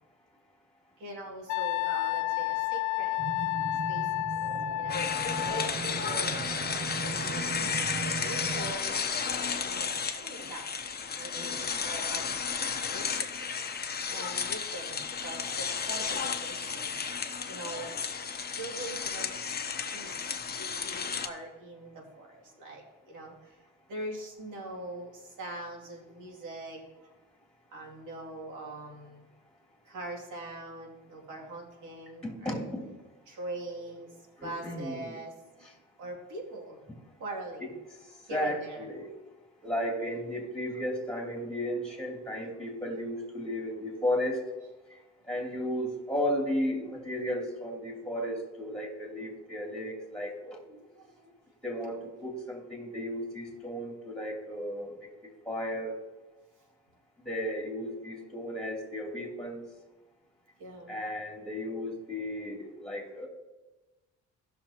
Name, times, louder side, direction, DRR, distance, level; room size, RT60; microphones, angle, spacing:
voice 1, 1.0-3.2 3.7-4.1 4.8-5.1 5.4-9.0 9.6-10.8 11.1-13.5 14.0-17.9 18.5-19.3 19.9-27.1 27.7-29.3 29.8-32.6 33.3-35.5 36.0-36.8 37.2-37.7 38.3-38.9 46.1-46.2 50.6-51.4 60.6-61.0, right 2 dB, 85° right, 0 dB, 2.6 m, -43 dB
Wind instrument woodwind instrument, 1.5-5.7, left 16 dB, 75° left, 0.5 m, -31 dB
sound 1, 3.2-8.7, right 5 dB, 30° right, 0.4 m, -38 dB
sound 2, 4.9-21.3, left 6 dB, 30° left, 0.9 m, -33 dB
voice 2, 11.3-11.8 32.2-32.9 34.4-35.1 35.6-35.7 38.3-39.1 39.6-44.4 45.3-50.6 51.6-55.1 55.4-56.0 57.2-59.6 60.9-63.3, equal, ahead, -1 dB, 3.0 m, -34 dB
17.5 x 6.3 x 2.9 m, 1.1 s
cardioid pair, 90°, 30 cm